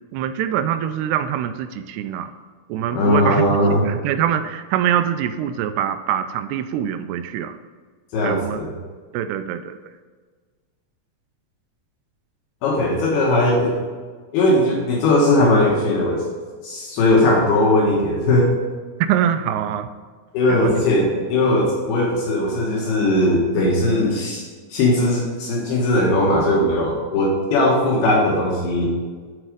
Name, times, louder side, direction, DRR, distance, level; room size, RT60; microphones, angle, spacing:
voice 1, 0.1-2.3 2.7-7.6 8.2-8.6 9.1-9.8 19.1-19.9 20.5-20.7, right 10 dB, 85° right, 10 dB, 2.5 m, -24 dB
voice 2, 2.9-3.8 8.1-8.7 12.6-13.8 14.3-16.2 16.6-18.5 20.3-24.4 24.7-28.9, left 1 dB, 75° left, -3 dB, 3.2 m, -18 dB
12.0 x 4.2 x 5.0 m, 1.5 s
omnidirectional pair, 4.6 m